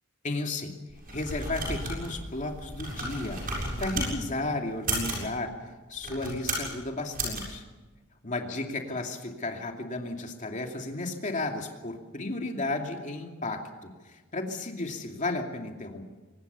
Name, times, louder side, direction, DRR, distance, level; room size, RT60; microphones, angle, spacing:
voice 1, 0.2-0.8 1.1-3.4 3.8-5.5 5.9-7.6 8.2-16.0, left 2 dB, 35° left, 3 dB, 2.6 m, -33 dB
sound 1, 0.9-4.1 4.7-5.3 6.0-6.7 7.1-7.4, right 2 dB, 45° right, 7.3 m, -33 dB
23.5 x 20.0 x 7.0 m, 1.3 s
head